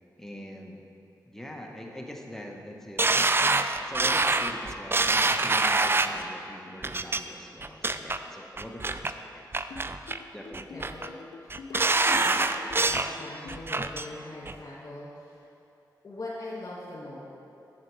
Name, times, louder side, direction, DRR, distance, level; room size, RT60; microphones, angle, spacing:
voice 1, 0.2-0.8 1.3-3.5 3.8-9.7 10.3-10.8, equal, 5° left, 1 dB, 1.3 m, -43 dB
sound 1, 3.0-6.2 6.8-7.2 7.6-8.2 8.6-9.1 9.5-10.2 10.5-11.1 11.5-13.1 13.5-14.1 14.5-14.6, right 3 dB, 30° right, 0.4 m, -25 dB
sound 2, 9.7-13.7, left 4 dB, 85° left, 0.5 m, -45 dB
voice 2, 10.7-11.1 11.4-15.5 16.0-17.2, left 1 dB, 55° left, -8 dB, 2.0 m, -41 dB
9.0 x 7.5 x 4.8 m, 2.8 s
cardioid pair, 45°, 8 cm